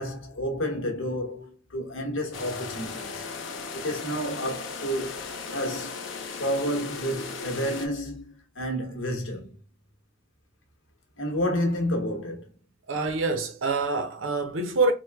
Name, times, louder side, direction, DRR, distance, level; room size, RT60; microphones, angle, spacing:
voice 1, 0.0-3.3 3.7-6.1 6.4-9.6 11.2-12.5, equal, 90° left, 1.0 m, -30 dB
sound 1, 2.3-7.9, left 4 dB, 75° left, 0.6 m, -37 dB
voice 2, 12.9-14.9, right 3 dB, 85° right, 0.7 m, -26 dB
3.0 x 2.1 x 3.4 m
head